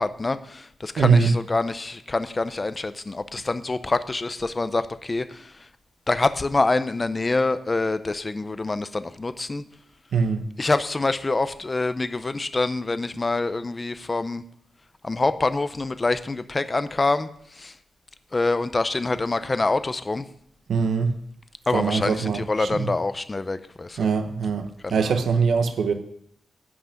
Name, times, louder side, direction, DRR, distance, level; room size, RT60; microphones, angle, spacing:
voice 1, 0.0-5.5 6.1-9.6 10.6-14.4 15.0-17.3 17.6-17.7 18.3-20.3 21.7-24.0 24.8-25.2, left 3 dB, 20° left, 0.6 m, -26 dB
voice 2, 1.0-1.3 10.1-10.4 20.7-21.1 21.7-22.9 24.0-25.9, right 5 dB, 70° right, 1.0 m, -22 dB
11.0 x 6.0 x 8.7 m
wide cardioid pair, 165°, 0 cm